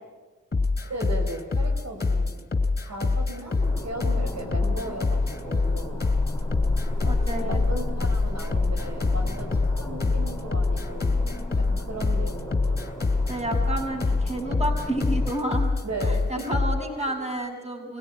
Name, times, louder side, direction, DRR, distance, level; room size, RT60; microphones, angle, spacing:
sound 1, 0.5-16.8, left 3 dB, 30° left, 3.2 m, -25 dB
voice 1, 0.8-2.4 2.9-6.0 7.0-7.2 7.4-12.9 15.8-16.6 17.0-17.1, right 1 dB, 50° right, 1 dB, 5.5 m, -36 dB
sound 2, 3.6-15.3, left 2 dB, 10° left, 5.4 m, -33 dB
voice 2, 7.0-7.6 13.3-15.7 16.0-18.0, right 1 dB, 20° right, 3 dB, 6.3 m, -30 dB
22.5 x 17.0 x 9.8 m, 1.3 s
hypercardioid pair, 40°, 35 cm